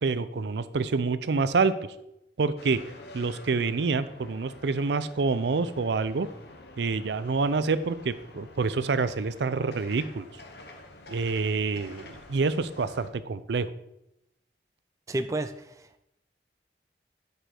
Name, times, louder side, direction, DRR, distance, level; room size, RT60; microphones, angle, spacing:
voice 1, 0.0-1.7 2.4-2.8 3.1-6.3 6.8-10.3 11.1-13.7, right 4 dB, 75° right, 14 dB, 0.5 m, -27 dB
sound 1, 2.6-13.1, left 2 dB, 70° left, 1.0 m, -49 dB
voice 2, 15.1-16.0, right 1 dB, 20° right, 9 dB, 0.3 m, -32 dB
9.1 x 6.7 x 4.4 m, 0.84 s
head